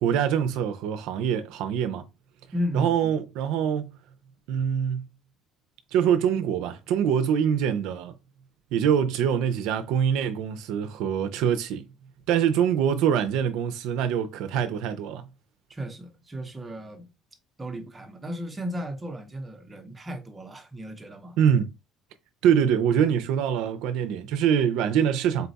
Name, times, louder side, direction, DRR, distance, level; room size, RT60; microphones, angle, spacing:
voice 1, 0.0-2.0 2.7-3.9 4.5-5.0 5.9-8.1 8.7-11.8 12.3-15.2 21.4-21.7 22.4-25.5, right 8 dB, 75° right, 0.4 m, -24 dB
voice 2, 2.5-3.1 15.7-17.1 17.6-21.4, equal, 20° right, 0.7 m, -35 dB
4.0 x 2.3 x 3.9 m
cardioid pair, 145°, 0 cm